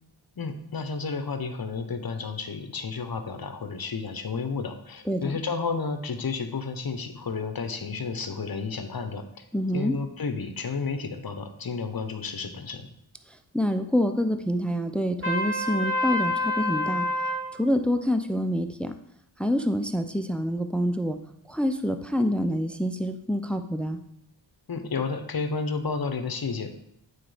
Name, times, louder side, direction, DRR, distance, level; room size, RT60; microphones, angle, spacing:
voice 1, 0.4-9.3 9.7-12.9 24.7-26.8, left 4 dB, 50° left, 8 dB, 1.0 m, -31 dB
voice 2, 5.1-5.4 9.5-10.0 13.5-17.1 17.5-18.9 19.4-21.2 21.5-24.0, equal, ahead, 8 dB, 0.6 m, -26 dB
Trumpet, 15.2-17.5, left 2 dB, 25° right, 2.5 m, -27 dB
8.6 x 4.2 x 5.1 m, 0.75 s
wide cardioid pair, 55°, 46 cm